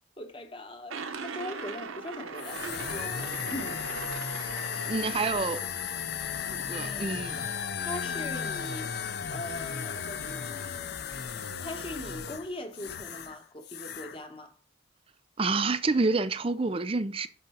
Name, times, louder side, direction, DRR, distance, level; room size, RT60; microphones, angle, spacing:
voice 1, 0.2-3.9 6.7-7.2 7.8-8.9 9.3-10.8 11.6-14.5, left 1 dB, 25° left, 0.8 m, -41 dB
sound 1, 0.9-5.9, right 5 dB, 80° right, 0.7 m, -40 dB
sound 2, 2.4-13.4 13.6-14.2, left 7 dB, 50° left, 0.5 m, -35 dB
voice 2, 4.8-5.6 6.5-7.4 15.4-17.3, right 3 dB, 25° right, 0.4 m, -28 dB
5.5 x 3.8 x 5.6 m
head